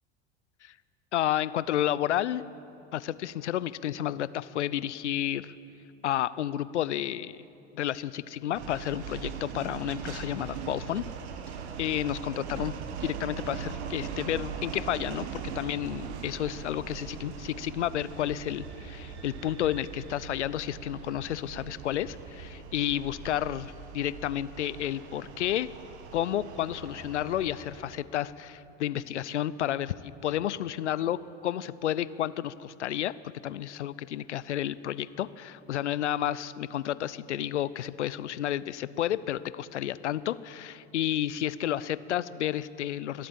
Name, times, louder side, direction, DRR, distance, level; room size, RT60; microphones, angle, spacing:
voice 1, 1.1-2.4 2.9-5.5 6.0-7.4 7.7-11.1 11.8-12.7 13.0-25.7 26.1-43.3, left 12 dB, 85° left, 17 dB, 0.5 m, -31 dB
sound 1, 8.5-28.0, right 7 dB, 75° right, 1.3 m, -40 dB
22.0 x 8.4 x 7.4 m, 3.0 s
hypercardioid pair, 80°, 34 cm